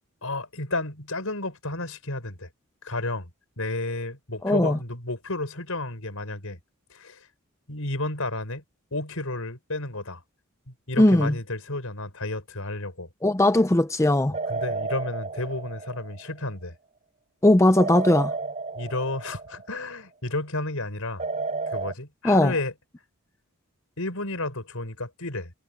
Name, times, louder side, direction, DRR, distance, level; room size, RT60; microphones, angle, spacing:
voice 1, 0.2-2.5 2.8-3.3 3.6-6.6 6.9-7.3 7.7-8.6 8.9-10.2 10.7-13.1 14.5-16.7 18.7-21.2 21.7-22.7 24.0-25.5, left 2 dB, 70° left, 5.7 m, -32 dB
voice 2, 4.4-4.8 11.0-11.3 13.2-14.3 17.4-18.3 22.2-22.5, left 1 dB, 15° left, 0.6 m, -19 dB
sound 1, 14.3-16.4 17.8-19.8 21.2-21.9, right 4 dB, 30° right, 5.5 m, -32 dB
head